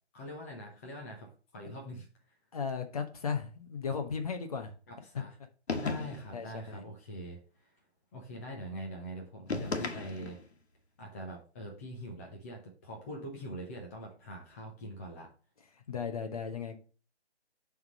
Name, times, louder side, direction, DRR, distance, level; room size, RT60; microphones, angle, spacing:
voice 1, 0.1-2.1 4.9-5.3 5.8-7.7 8.1-10.4 11.0-15.3, equal, 15° left, -1 dB, 0.8 m, -43 dB
voice 2, 2.5-4.7 6.3-6.8 15.7-16.8, left 6 dB, 35° left, 5 dB, 1.1 m, -36 dB
sound 1, 5.7-6.4 9.5-10.5, left 3 dB, 75° left, 1.6 m, -35 dB
7.0 x 3.7 x 6.2 m, 0.36 s
hypercardioid pair, 160°, 33 cm